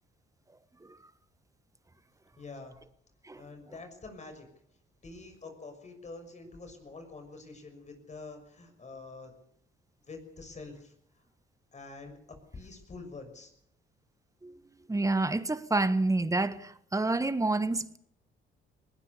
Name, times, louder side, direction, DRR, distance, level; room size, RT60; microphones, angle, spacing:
voice 1, 2.4-2.7 3.3-4.5 5.0-9.3 10.1-10.9 11.7-12.2 12.5-13.5, left 3 dB, 35° left, 6.5 m, -46 dB
voice 2, 14.9-18.0, right 2 dB, 15° right, 1.4 m, -28 dB
20.5 x 19.0 x 6.9 m
cardioid pair, 90°, 20 cm